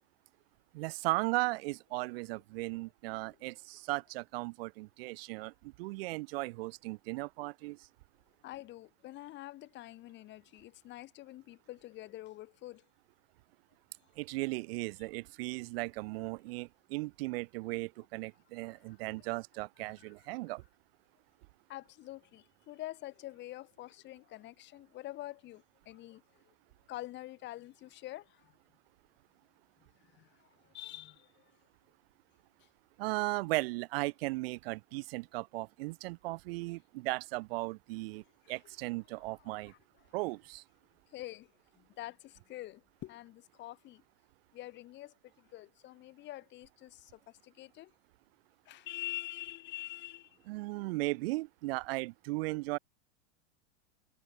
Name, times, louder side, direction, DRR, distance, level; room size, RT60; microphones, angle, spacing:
voice 1, 0.7-7.8 14.2-20.6 33.0-39.7 40.1-40.6 50.5-52.8, right 23 dB, 55° right, 1.3 m, -36 dB
voice 2, 8.4-12.8 18.9-19.3 20.0-20.1 21.7-26.4 26.9-28.5 30.1-31.5 32.6-32.7 38.4-38.5 39.4-39.8 41.1-44.0 44.5-47.9 48.7-50.4, left 16 dB, 30° left, 2.6 m, -46 dB
supercardioid pair, 155°, 35 cm